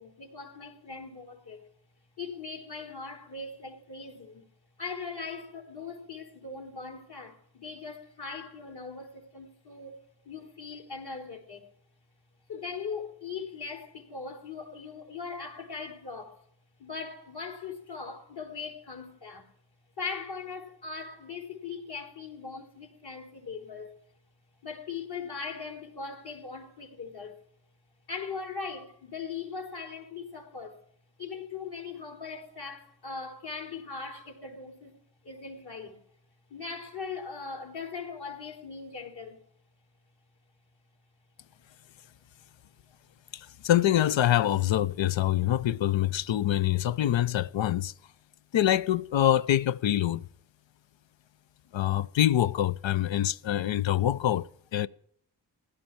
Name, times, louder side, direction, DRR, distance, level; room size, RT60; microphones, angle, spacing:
voice 1, 0.0-1.6 2.2-4.5 4.8-10.0 10.3-11.7 12.5-16.4 16.8-19.5 20.0-23.9 24.6-27.4 28.1-30.8 31.2-35.0 35.2-36.0 36.5-39.4, left 5 dB, 55° left, 3.7 m, -40 dB
voice 2, 43.3-47.9 48.5-50.2 51.7-54.5 54.7-54.9, left 12 dB, 70° left, 0.6 m, -25 dB
16.0 x 11.5 x 4.5 m
cardioid pair, 55°, 47 cm